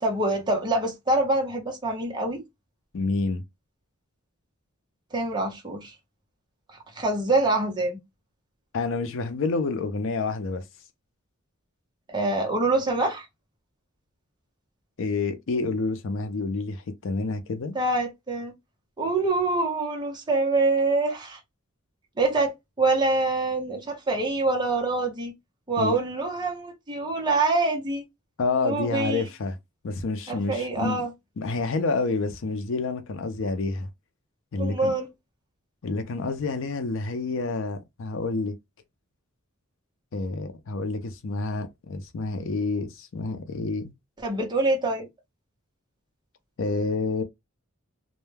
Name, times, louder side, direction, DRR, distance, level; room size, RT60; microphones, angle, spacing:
voice 1, 0.0-2.4 5.1-5.9 7.0-8.0 12.1-13.3 17.7-18.5 19.0-21.4 22.2-25.3 25.7-28.0 28.6-29.2 30.3-31.1 34.6-35.1 44.2-45.1, right 2 dB, 20° right, 0.7 m, -25 dB
voice 2, 2.9-3.4 8.7-10.6 15.0-17.7 25.8-26.0 28.4-29.6 29.8-31.0 31.4-33.9 34.5-34.9 35.8-38.5 40.1-43.9 46.6-47.2, left 3 dB, 65° left, 0.5 m, -28 dB
2.2 x 2.1 x 3.2 m
head